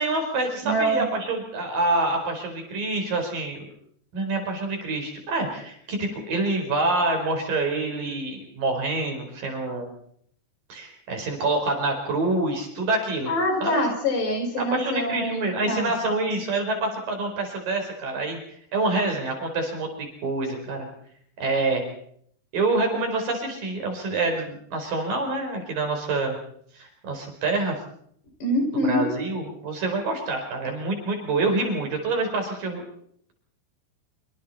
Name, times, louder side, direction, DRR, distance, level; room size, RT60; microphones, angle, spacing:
voice 1, 0.0-3.6 4.1-9.9 10.7-13.3 13.6-13.8 14.6-18.4 18.7-20.9 21.4-21.8 22.5-26.4 26.7-27.8 28.8-32.8, right 2 dB, 55° right, 4 dB, 6.1 m, -26 dB
voice 2, 0.6-1.0 13.3-15.9 28.4-29.1, equal, 80° left, 3 dB, 7.7 m, -25 dB
26.5 x 25.0 x 4.2 m, 0.66 s
omnidirectional pair, 4.8 m